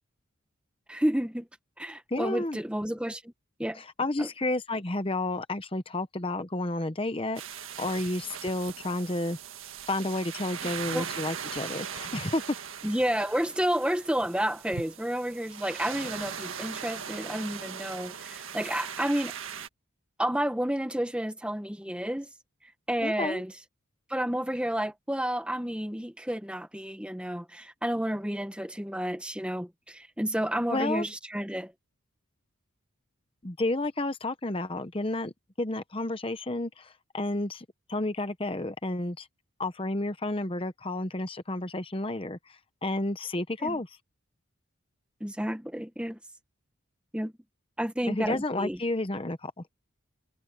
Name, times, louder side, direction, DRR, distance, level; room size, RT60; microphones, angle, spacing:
voice 1, 0.9-1.5 1.8-3.3 3.6-3.8 4.2-4.3 10.9-11.0 12.8-19.3 20.2-22.3 22.6-23.5 24.1-31.7 43.6-43.8 45.2-46.2 47.1-47.3 47.8-48.8, equal, 5° right, 1.0 m, -31 dB
voice 2, 2.1-2.6 3.8-9.4 9.9-12.6 23.0-23.4 30.7-31.1 33.4-39.3 39.6-44.0 48.1-49.5, left 2 dB, 25° left, 0.9 m, -31 dB
sound 1, 7.4-19.7, right 7 dB, 70° right, 1.7 m, -39 dB
head